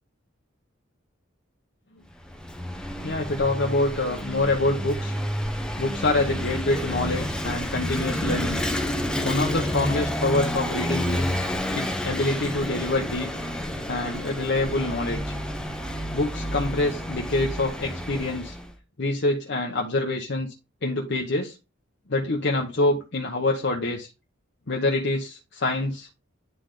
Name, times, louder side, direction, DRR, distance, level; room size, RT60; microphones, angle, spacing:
Vehicle / Engine, 2.1-18.7, equal, 5° left, 0.7 m, -30 dB
voice 1, 3.0-5.1 5.8-8.6 9.2-11.4 11.7-13.3 13.9-15.4 16.1-18.6 19.0-20.5 20.8-21.6 22.1-24.1 24.7-26.1, left 2 dB, 60° left, 1 dB, 0.9 m, -26 dB
9.5 x 3.3 x 3.7 m, 0.29 s
head